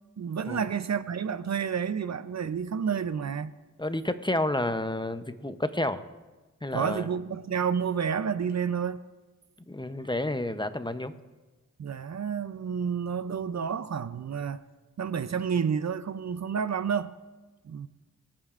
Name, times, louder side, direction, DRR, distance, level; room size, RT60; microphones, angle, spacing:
voice 1, 0.2-3.5 6.7-9.0 11.8-14.6 15.0-17.1 17.6-17.9, right 7 dB, 55° right, 0.5 m, -30 dB
voice 2, 3.8-6.0 6.6-7.1 9.7-11.1, left 1 dB, 15° left, 0.7 m, -30 dB
25.5 x 8.8 x 2.5 m
cardioid pair, 45°, 32 cm